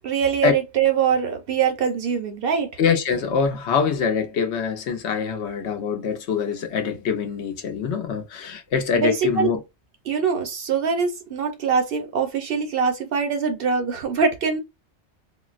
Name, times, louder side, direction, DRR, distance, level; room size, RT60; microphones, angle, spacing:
voice 1, 0.0-2.7 8.9-9.5 10.1-14.6, right 6 dB, 60° right, 0.7 m, -23 dB
voice 2, 2.8-9.6, left 6 dB, 70° left, 0.9 m, -24 dB
3.8 x 2.0 x 2.4 m
omnidirectional pair, 1.2 m